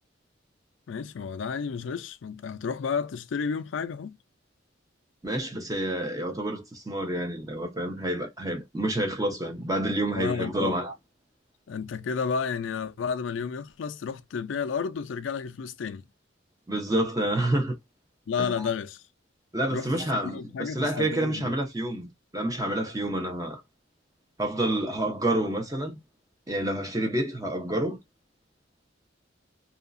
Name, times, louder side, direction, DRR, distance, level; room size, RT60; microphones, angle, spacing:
voice 1, 0.9-4.2 10.2-10.8 11.7-16.1 18.3-19.0 19.7-21.6, left 6 dB, 85° left, 0.4 m, -32 dB
voice 2, 5.2-10.9 16.7-17.7 18.4-18.6 19.5-23.6 24.4-26.0 26.5-28.0, right 1 dB, 20° right, 0.9 m, -28 dB
2.7 x 2.4 x 2.4 m
head